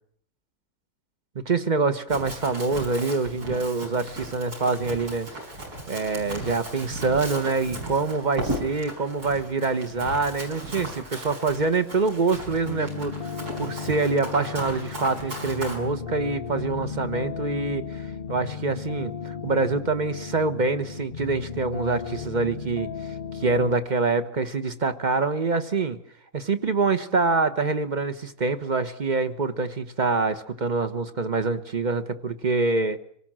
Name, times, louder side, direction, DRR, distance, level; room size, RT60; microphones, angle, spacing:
voice 1, 1.4-5.3 5.9-22.9 23.3-26.0 26.3-33.0, right 3 dB, 30° right, 10 dB, 1.1 m, -25 dB
Run, 2.1-15.8, right 1 dB, 80° right, 5.7 m, -36 dB
sound 1, 12.6-23.8, left 6 dB, 40° left, 1.1 m, -35 dB
25.5 x 18.5 x 7.5 m, 0.64 s
omnidirectional pair, 1.6 m